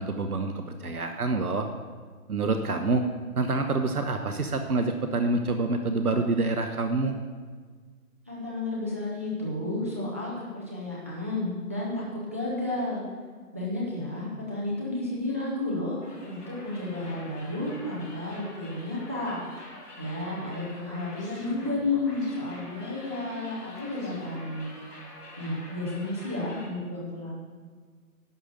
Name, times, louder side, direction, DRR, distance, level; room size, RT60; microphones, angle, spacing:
voice 1, 0.0-1.7 2.3-3.0 3.4-7.2, right 3 dB, 70° right, 6 dB, 1.0 m, -27 dB
voice 2, 8.3-13.0 13.5-19.4 20.0-24.8 25.4-27.3, left 2 dB, 10° right, -6 dB, 0.7 m, -32 dB
sound 1, 16.0-26.7, left 1 dB, 90° left, 2.9 m, -47 dB
11.0 x 5.1 x 6.7 m, 1.5 s
figure-of-eight pair, 155°, 46 cm